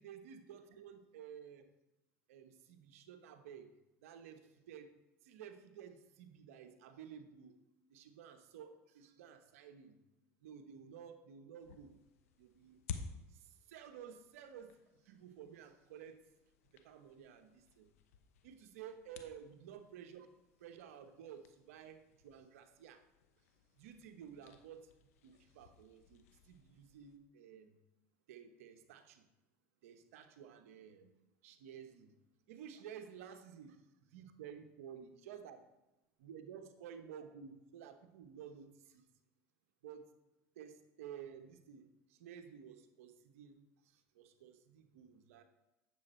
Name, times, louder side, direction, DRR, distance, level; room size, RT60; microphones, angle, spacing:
voice 1, 0.0-1.7 2.3-3.7 4.0-4.9 5.2-7.6 7.9-10.0 10.4-12.0 12.4-12.8 13.3-16.2 16.7-17.9 18.4-20.3 20.6-23.0 23.8-24.9 25.2-27.7 28.3-29.3 29.8-31.1 31.4-32.1 32.5-33.8 34.1-35.6 36.2-39.1 39.8-40.1 40.6-45.4, right 8 dB, 85° right, 8 dB, 1.0 m, -53 dB
sound 1, 11.6-27.2, left 6 dB, 85° left, 0.9 m, -55 dB
9.6 x 7.2 x 4.4 m, 0.94 s
hypercardioid pair, 90°, 7 cm